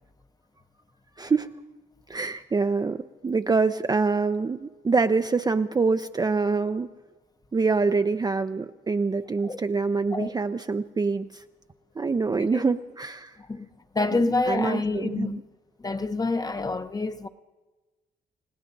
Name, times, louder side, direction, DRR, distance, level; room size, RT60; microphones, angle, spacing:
voice 1, 1.2-1.5 2.1-6.9 7.5-11.4 12.0-13.4 14.1-15.4, right 4 dB, 20° right, 0.4 m, -25 dB
voice 2, 13.9-15.4 15.8-17.3, left 3 dB, 20° left, 0.7 m, -27 dB
30.0 x 17.0 x 2.6 m
cardioid pair, 90°, 20 cm